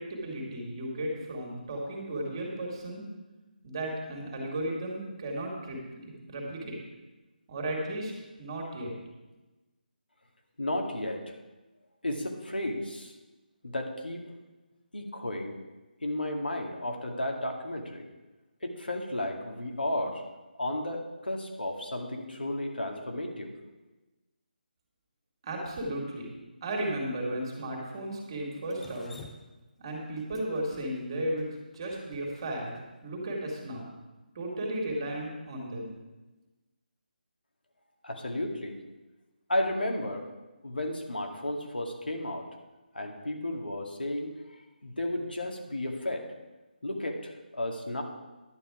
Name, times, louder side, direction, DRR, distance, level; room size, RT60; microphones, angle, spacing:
voice 1, 0.0-3.1 3.6-6.8 7.5-8.1 8.4-8.9 25.4-26.3 26.6-29.1 29.8-33.9 34.3-36.0, right 1 dB, 30° right, -1 dB, 2.4 m, -35 dB
voice 2, 10.6-11.2 12.0-13.1 13.6-14.3 14.9-15.6 16.0-18.1 18.6-20.2 20.6-23.5 38.0-38.8 39.5-40.3 40.6-42.4 42.9-44.3 44.8-46.3 46.8-48.0, left 1 dB, 80° left, 2 dB, 2.0 m, -33 dB
Drip, 28.7-32.8, left 3 dB, 5° left, 0.5 m, -52 dB
11.0 x 8.7 x 4.9 m, 1.1 s
figure-of-eight pair, 155°, 5 cm